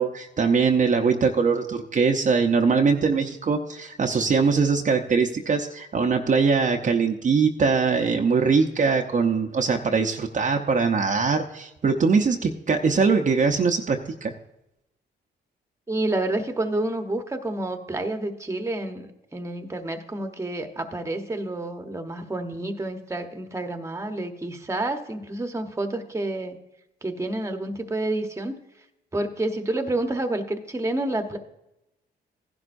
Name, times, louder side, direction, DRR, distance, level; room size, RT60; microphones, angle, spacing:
voice 1, 0.0-14.3, right 5 dB, 40° right, 2 dB, 0.8 m, -22 dB
voice 2, 15.9-26.6 27.0-28.6 29.1-31.4, right 2 dB, 15° right, 6 dB, 1.1 m, -29 dB
15.5 x 11.0 x 2.6 m, 0.89 s
cardioid pair, 80°, 19 cm